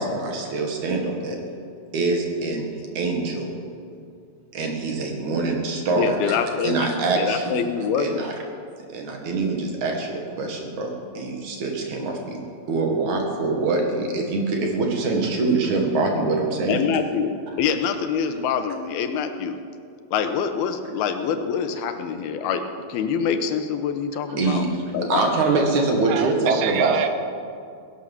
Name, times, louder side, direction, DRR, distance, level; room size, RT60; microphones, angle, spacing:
voice 1, 0.0-1.4 1.9-2.7 2.9-3.5 4.5-6.4 6.6-7.6 7.9-8.3 8.9-12.4 12.7-16.8 24.4-27.0, right 3 dB, 55° right, 2 dB, 3.0 m, -24 dB
voice 2, 6.0-8.2 16.7-19.6 20.1-22.6 22.9-24.7 24.9-25.2, left 7 dB, 80° left, 8 dB, 2.8 m, -25 dB
voice 3, 26.1-27.1, right 8 dB, 85° right, 8 dB, 3.0 m, -26 dB
17.5 x 11.5 x 7.3 m, 2.3 s
omnidirectional pair, 4.5 m